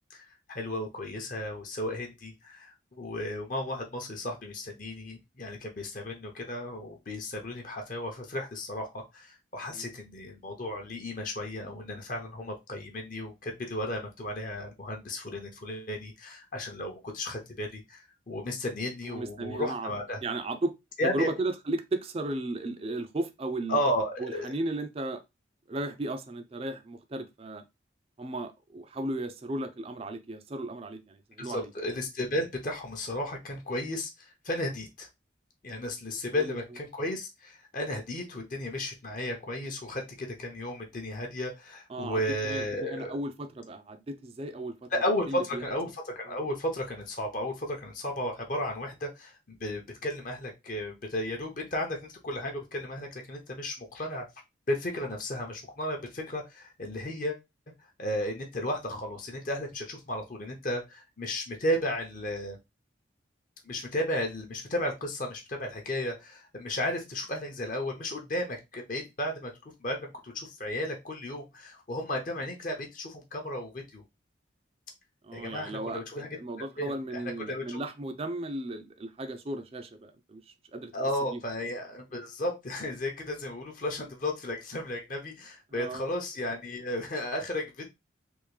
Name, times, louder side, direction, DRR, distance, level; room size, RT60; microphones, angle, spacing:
voice 1, 0.1-20.2 21.0-21.3 23.7-24.5 31.4-35.1 35.6-43.2 44.9-54.2 54.7-57.4 58.0-62.6 63.6-69.5 69.8-74.0 75.3-76.3 76.6-77.8 80.9-87.9, left 1 dB, 45° left, 0.7 m, -34 dB
voice 2, 19.0-19.9 20.2-20.7 21.0-23.8 24.2-25.2 25.7-27.6 28.2-31.7 36.1-36.6 41.9-44.9 45.3-45.6 75.2-80.9 81.3-81.4 85.7-86.1, right 2 dB, 30° right, 0.4 m, -35 dB
3.6 x 2.5 x 3.1 m
head